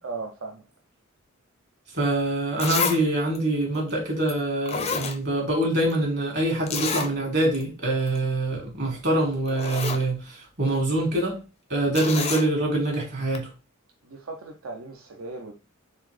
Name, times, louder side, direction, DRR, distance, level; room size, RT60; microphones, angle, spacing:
voice 1, 0.0-0.6 13.0-13.1 14.0-15.5, right 3 dB, 80° right, 0.7 m, -37 dB
voice 2, 1.9-11.4 11.7-13.5, right 1 dB, 55° right, 1.9 m, -25 dB
Zipper (clothing), 2.6-3.0 3.3-3.4 4.3-4.4 4.7-5.6 5.9-6.0 6.7-7.1 7.5-7.6 8.0-8.2 9.1-9.2 9.5-10.0 11.9-12.5 13.3-13.4, left 5 dB, 30° left, 0.5 m, -29 dB
4.1 x 3.6 x 3.2 m
head